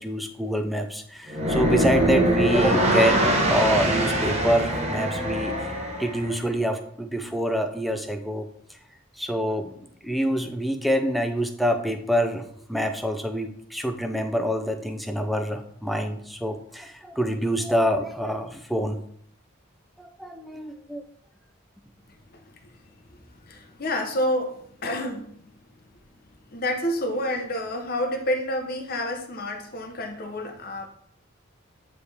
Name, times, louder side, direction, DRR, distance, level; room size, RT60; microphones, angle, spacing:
voice 1, 0.0-8.5 9.2-9.7 10.0-12.4 12.7-19.0 20.0-21.0, equal, ahead, 0.4 m, -26 dB
sound 1, 1.3-6.4, right 1 dB, 30° right, 1.0 m, -23 dB
voice 2, 23.4-25.3 26.5-30.9, left 1 dB, 45° left, 0.8 m, -28 dB
9.3 x 3.2 x 3.4 m
head